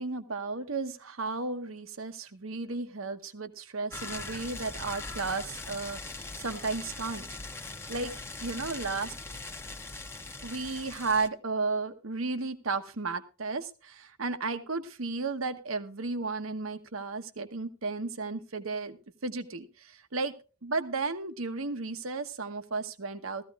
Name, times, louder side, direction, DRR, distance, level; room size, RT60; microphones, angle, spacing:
voice 1, 0.0-7.3 7.9-8.1 8.4-9.1 10.4-20.3 20.6-23.4, right 3 dB, 70° right, 10 dB, 1.1 m, -34 dB
sound 1, 3.9-11.3, left 3 dB, 10° left, 0.8 m, -41 dB
17.5 x 14.5 x 2.4 m, 0.34 s
head